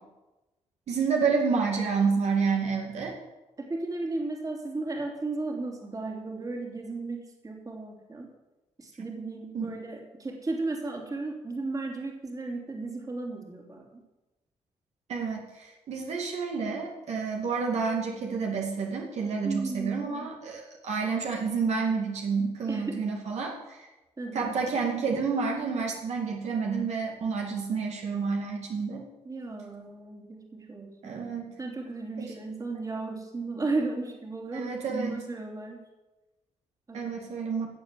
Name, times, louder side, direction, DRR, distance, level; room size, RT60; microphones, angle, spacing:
voice 1, 0.9-3.2 9.5-9.6 15.1-23.9 24.3-29.0 31.0-31.5 32.2-32.3 34.5-35.2 36.9-37.7, right 5 dB, 70° right, 0 dB, 2.3 m, -29 dB
voice 2, 3.6-8.3 8.8-13.9 19.4-20.3 22.7-23.0 24.2-24.5 29.2-31.2 31.6-35.8 36.9-37.1, right 3 dB, 30° right, 1 dB, 3.0 m, -35 dB
16.0 x 7.4 x 7.5 m, 1.1 s
cardioid pair, 90°, 12 cm